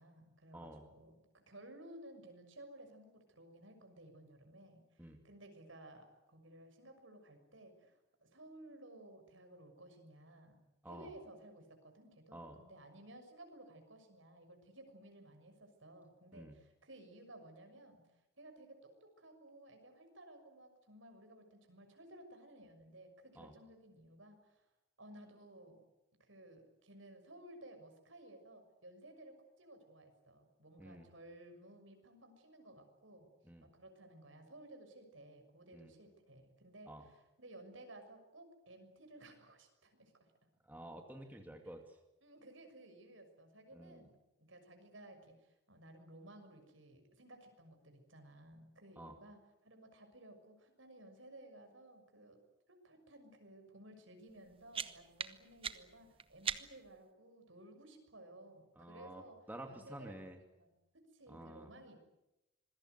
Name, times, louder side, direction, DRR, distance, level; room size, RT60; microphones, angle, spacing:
voice 1, 0.0-10.6 10.9-18.0 18.4-24.7 25.0-25.8 26.2-33.3 33.6-40.3 41.3-41.4 42.2-44.1 44.4-52.4 52.7-59.4 59.6-62.0, right 1 dB, 75° right, 5 dB, 6.4 m, -57 dB
voice 2, 0.5-0.9 5.0-5.2 10.8-11.1 12.3-12.6 16.3-16.6 23.4-23.6 30.8-31.1 33.4-33.7 35.7-35.9 36.9-37.0 40.6-42.0 43.7-44.0 49.0-49.2 58.8-59.2 59.5-60.4 61.3-61.7, right 1 dB, 10° right, 3 dB, 2.4 m, -51 dB
sound 1, 54.3-57.0, right 6 dB, 25° right, 1.0 m, -43 dB
26.5 x 21.5 x 8.1 m, 0.93 s
head